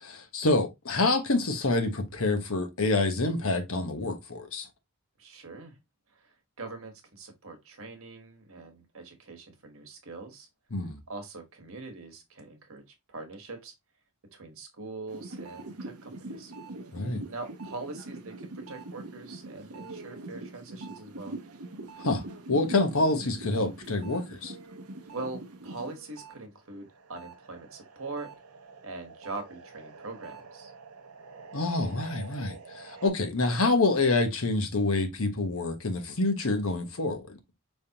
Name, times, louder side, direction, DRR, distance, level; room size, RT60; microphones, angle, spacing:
voice 1, 0.0-4.7 10.7-11.0 16.9-17.2 22.0-22.2 22.5-24.5 31.5-37.4, left 2 dB, 65° left, 1.1 m, -27 dB
voice 2, 5.2-5.8 6.1-10.5 11.1-13.7 14.3-16.5 17.3-21.4 25.1-28.3 28.8-30.7, right 3 dB, 65° right, 1.4 m, -42 dB
sound 1, 15.1-26.4 26.7-33.1, right 2 dB, 80° right, 0.8 m, -44 dB
5.3 x 3.4 x 2.8 m
head